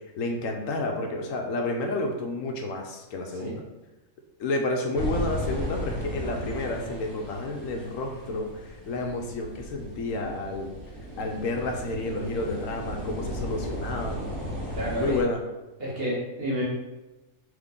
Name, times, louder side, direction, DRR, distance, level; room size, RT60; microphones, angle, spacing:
voice 1, 0.2-3.6 4.4-10.7 11.2-14.2 15.0-15.4, left 2 dB, 75° left, 3 dB, 0.9 m, -30 dB
sound 1, 4.9-15.2, equal, 90° right, 1.4 m, -35 dB
voice 2, 14.7-15.2 15.8-16.6, equal, 45° right, -6 dB, 1.4 m, -30 dB
3.6 x 3.2 x 3.6 m, 1.1 s
omnidirectional pair, 1.5 m